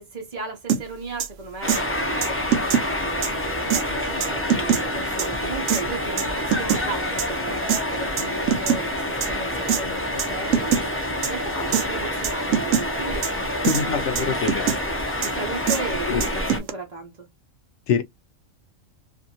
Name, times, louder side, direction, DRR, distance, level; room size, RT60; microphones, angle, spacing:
voice 1, 0.0-3.3 3.7-13.5 13.8-14.0 15.2-17.3, right 3 dB, 35° right, 0.7 m, -35 dB
sound 1, 0.7-0.8 1.2-1.3 1.7-1.8 2.2-2.9 3.2-3.3 3.7-3.8 4.2-4.8 5.2-5.3 5.7-5.8 6.2-6.8 7.2-7.3 7.7-7.8 8.2-8.8 9.2-9.3 9.7-9.8 10.2-10.3 10.5-10.8 11.2-11.3 11.7-11.8 12.2-12.8 13.2-13.3 13.6-13.8 14.2-14.8 15.2-15.3 15.7-15.8 16.2-16.7, right 8 dB, 70° right, 0.9 m, -22 dB
sound 2, 1.6-16.6, left 1 dB, 15° left, 0.5 m, -27 dB
voice 2, 13.7-14.8 16.1-16.3 17.9-18.0, left 6 dB, 65° left, 0.8 m, -24 dB
2.7 x 2.5 x 2.7 m
omnidirectional pair, 1.4 m